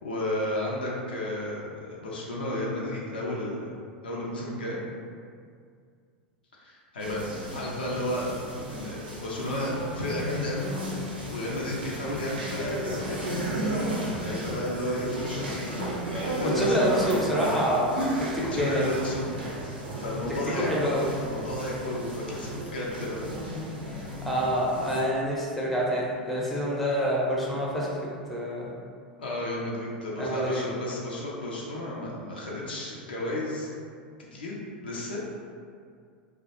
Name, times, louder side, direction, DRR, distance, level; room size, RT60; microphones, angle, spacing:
voice 1, 0.0-3.8 4.0-4.8 6.5-7.3 7.5-8.3 8.7-10.7 11.3-13.3 14.1-15.8 16.1-16.9 18.5-19.3 19.9-20.9 21.2-23.2 29.2-33.7 34.3-34.5 34.8-35.2, left 1 dB, 80° left, -4 dB, 0.5 m, -32 dB
sound 1, 7.0-25.0, right 1 dB, 90° right, 0.5 m, -34 dB
voice 2, 16.5-18.8 20.5-21.0 24.2-28.0 28.3-28.7 30.2-30.7, equal, ahead, -5 dB, 0.6 m, -27 dB
2.2 x 2.0 x 2.8 m, 2.2 s
hypercardioid pair, 90°, 5 cm